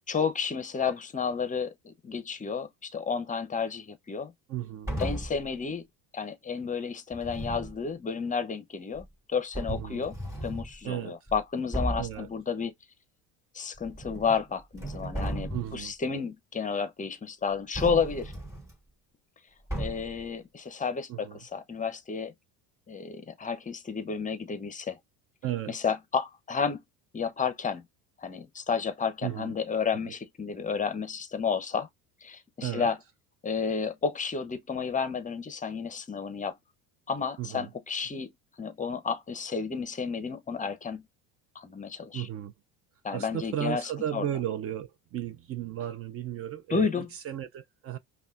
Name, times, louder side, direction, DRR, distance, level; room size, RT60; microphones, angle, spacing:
voice 1, 0.1-4.3 5.0-5.8 6.1-10.1 10.4-12.7 13.5-18.3 19.8-22.3 22.9-25.0 25.7-26.8 27.1-27.8 28.2-31.9 32.2-33.0 33.4-36.5 37.1-38.3 38.6-41.0 41.5-42.3 43.0-44.3 46.7-47.1, left 5 dB, 20° left, 0.7 m, -31 dB
voice 2, 4.5-4.9 9.7-10.1 10.8-11.3 12.0-12.3 15.5-15.9 21.1-21.4 25.4-25.8 29.2-29.5 30.0-30.2 32.6-32.9 37.4-37.7 42.1-42.5 43.1-48.0, right 11 dB, 40° right, 0.5 m, -34 dB
sound 1, 4.9-5.5 7.1-7.8 9.0-9.1 9.5-10.7 11.3-11.4 11.7-12.2 13.8-14.4 14.7-15.8 17.7-18.7 19.7-20.2, right 1 dB, 10° right, 2.3 m, -35 dB
5.3 x 2.3 x 2.4 m
supercardioid pair, 105°, 37 cm